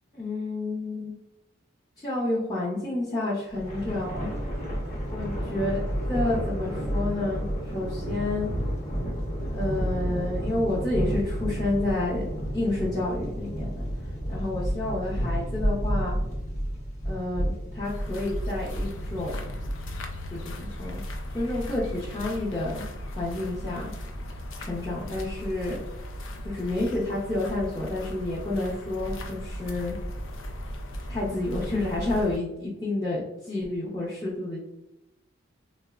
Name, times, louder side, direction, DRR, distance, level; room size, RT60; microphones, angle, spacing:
voice 1, 0.1-1.1 2.0-4.3 5.1-5.8 6.1-7.5 7.7-8.5 9.5-12.3 12.5-13.8 14.3-16.2 17.0-19.7 20.3-21.0 21.3-22.8 23.1-23.9 24.6-25.8 26.4-30.0 31.1-34.7, left 2 dB, 20° left, -9 dB, 0.5 m, -30 dB
Thunder, 3.5-20.1, equal, 35° left, 0.9 m, -31 dB
sound 1, 17.8-32.4, equal, 70° left, 0.4 m, -37 dB
3.5 x 2.0 x 2.3 m, 0.89 s
head